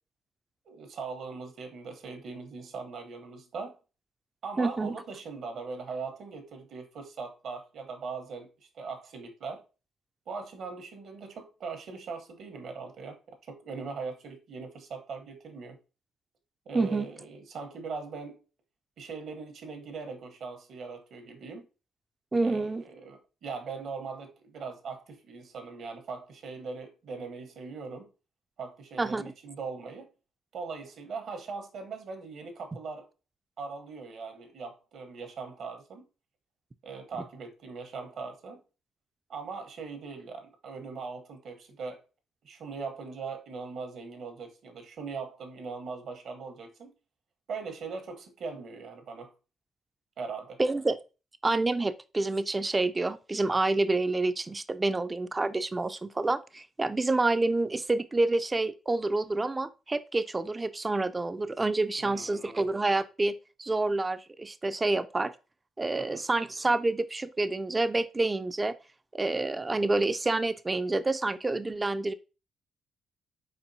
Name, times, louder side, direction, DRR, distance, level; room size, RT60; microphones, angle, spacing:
voice 1, 0.7-3.8 4.4-8.5 8.7-9.6 10.3-15.8 16.7-18.4 19.0-21.6 22.4-28.1 28.6-30.1 30.5-33.1 33.6-36.1 36.8-38.6 39.3-42.0 42.4-46.9 47.5-49.3 50.2-50.6 62.0-62.6 66.0-66.2, right 4 dB, 65° right, 1.0 m, -40 dB
voice 2, 4.6-5.0 16.7-17.1 22.3-22.8 29.0-29.2 50.6-51.0 51.4-65.3 65.8-68.7 69.1-72.1, right 2 dB, 20° right, 0.4 m, -28 dB
4.4 x 4.3 x 2.7 m
cardioid pair, 90°, 0 cm